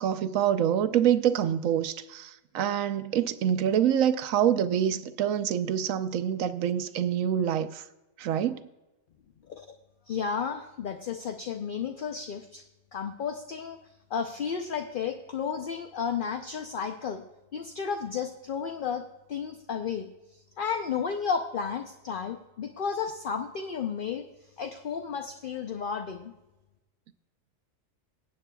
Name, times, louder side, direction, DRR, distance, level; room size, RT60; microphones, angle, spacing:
voice 1, 0.0-7.8 8.2-8.6, right 9 dB, 80° right, 1.0 m, -26 dB
voice 2, 10.1-12.6 12.9-13.8 14.1-17.2 17.5-19.0 19.3-20.1 20.6-24.2 24.6-26.3, left 6 dB, 50° left, 0.7 m, -32 dB
19.0 x 9.1 x 2.3 m
omnidirectional pair, 1.4 m